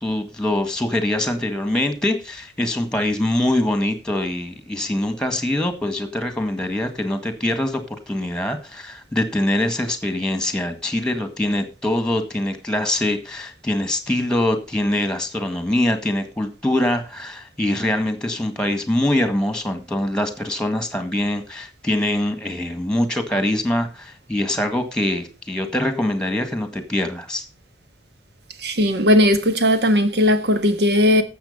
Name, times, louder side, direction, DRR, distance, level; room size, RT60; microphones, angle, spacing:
voice 1, 0.0-27.4, left 1 dB, 5° left, 1.7 m, -23 dB
voice 2, 28.6-31.2, left 1 dB, 65° right, 1.4 m, -17 dB
12.0 x 7.6 x 5.6 m
head